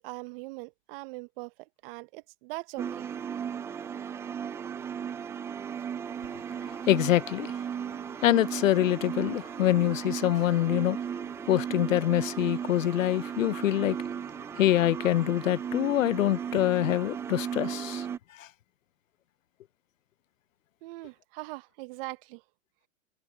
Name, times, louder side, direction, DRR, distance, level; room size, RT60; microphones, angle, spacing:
voice 1, 0.0-1.5 1.8-3.1 20.8-22.4, right 23 dB, 45° right, 1.3 m, -41 dB
sound 1, 2.8-18.2, right 8 dB, 10° right, 0.3 m, -36 dB
voice 2, 6.9-7.5 8.2-11.0 11.5-14.0 14.5-18.1 18.4-18.5, left 13 dB, 90° left, 0.7 m, -25 dB
hypercardioid pair, 130°, 38 cm